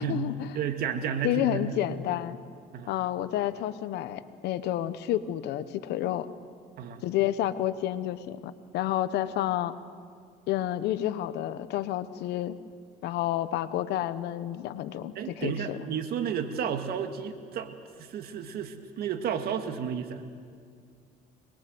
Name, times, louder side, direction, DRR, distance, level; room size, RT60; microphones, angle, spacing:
voice 1, 0.0-0.5 1.2-2.4 2.9-6.3 7.0-9.7 10.5-12.6 13.0-15.8, left 12 dB, 80° left, 14 dB, 1.0 m, -30 dB
voice 2, 0.5-1.8 2.7-2.9 6.8-7.0 15.1-20.2, right 7 dB, 65° right, 7 dB, 2.0 m, -32 dB
24.0 x 21.0 x 7.9 m, 2.1 s
cardioid pair, 110°, 17 cm